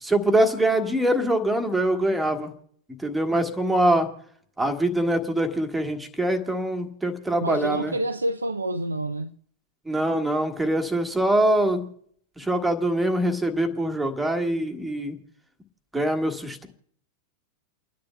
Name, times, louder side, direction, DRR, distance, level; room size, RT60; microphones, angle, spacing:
voice 1, 0.0-2.5 3.0-4.1 4.6-8.0 9.8-11.9 12.4-15.2 15.9-16.7, right 1 dB, 5° right, 1.6 m, -23 dB
voice 2, 7.4-9.3, right 1 dB, 80° right, 0.4 m, -28 dB
30.0 x 10.5 x 2.3 m
figure-of-eight pair, 90°, 0 cm